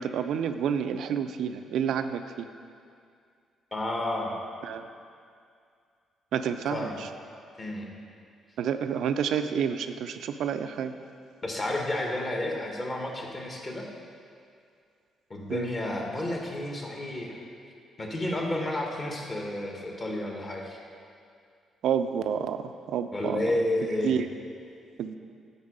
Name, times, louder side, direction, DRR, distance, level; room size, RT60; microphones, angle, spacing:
voice 1, 0.0-2.5 4.6-4.9 6.3-7.1 8.6-10.9 15.5-15.7 21.8-23.4 24.0-24.3 25.0-25.2, right 8 dB, 75° right, 9 dB, 0.4 m, -29 dB
voice 2, 3.7-4.4 6.7-7.0 7.6-7.9 11.4-13.9 15.3-17.4 18.0-20.8 23.1-24.1, left 1 dB, 35° left, 0 dB, 1.3 m, -31 dB
9.6 x 4.0 x 5.1 m, 2.3 s
cardioid pair, 90°, 0 cm